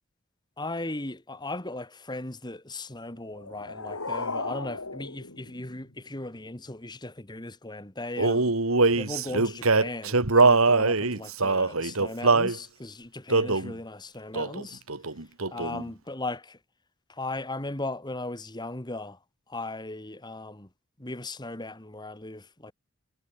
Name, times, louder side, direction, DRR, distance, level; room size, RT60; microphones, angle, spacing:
voice 1, 0.6-8.5 9.0-14.8 15.5-16.6 17.1-19.2 19.5-20.7 21.0-22.7, left 2 dB, 20° left, 1.8 m, -37 dB
sound 1, 3.2-6.2, left 3 dB, 75° left, 5.1 m, -36 dB
Male singing, 8.2-12.6 13.3-13.7 14.3-14.6 14.9-15.8, right 3 dB, 70° right, 2.0 m, -22 dB
head